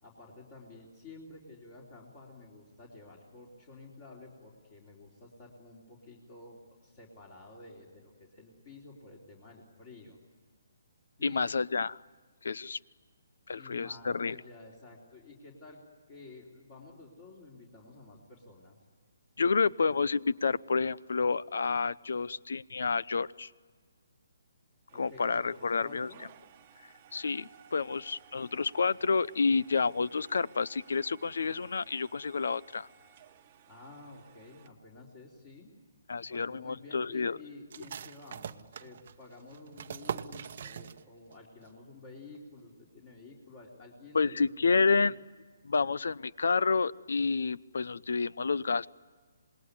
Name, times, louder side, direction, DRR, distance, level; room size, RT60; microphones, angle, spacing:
voice 1, 0.0-10.2 11.2-11.5 13.6-15.8 16.1-18.8 24.9-26.2 33.7-35.7 36.3-45.2, left 3 dB, 25° left, -1 dB, 3.7 m, -51 dB
voice 2, 11.2-12.0 12.4-12.8 13.5-14.4 19.4-23.5 25.0-26.1 27.1-32.9 36.1-37.4 44.1-45.1 45.6-48.9, left 4 dB, 70° left, 19 dB, 0.7 m, -29 dB
sound 1, 24.9-34.7, right 9 dB, 25° right, 1.3 m, -59 dB
sound 2, 37.7-41.4 41.6-41.7 42.2-42.6, right 7 dB, 40° right, 0.9 m, -42 dB
27.0 x 20.5 x 9.8 m, 1.5 s
hypercardioid pair, 170°, 0 cm